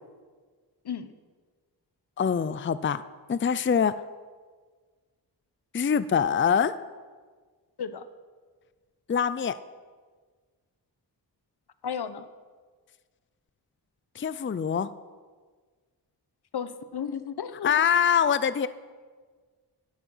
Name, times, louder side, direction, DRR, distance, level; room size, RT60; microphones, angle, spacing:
voice 1, 2.2-3.0 3.3-3.9 5.7-6.8 9.1-9.6 14.2-14.9 17.6-18.7, left 7 dB, 30° left, 15 dB, 0.5 m, -24 dB
voice 2, 11.8-12.3 16.5-17.8, left 7 dB, 70° left, 12 dB, 1.0 m, -34 dB
14.0 x 12.5 x 5.6 m, 1.5 s
cardioid pair, 65°, 41 cm